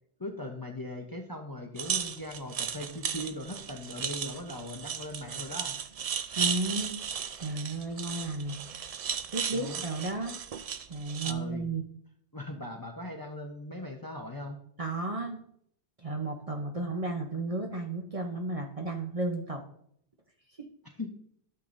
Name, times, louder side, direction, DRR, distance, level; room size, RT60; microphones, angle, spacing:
voice 1, 0.2-5.8 9.5-9.8 11.2-11.6 12.3-14.6 21.0-21.1, left 1 dB, 20° left, 2 dB, 0.8 m, -39 dB
sound 1, 1.8-11.3, right 7 dB, 50° right, 0.4 m, -35 dB
voice 2, 6.4-6.9 7.4-8.6 9.0-10.4 10.9-11.8 14.8-15.4 16.0-19.6, right 2 dB, 35° right, 3 dB, 0.8 m, -33 dB
12.0 x 6.8 x 2.6 m, 0.67 s
omnidirectional pair, 1.1 m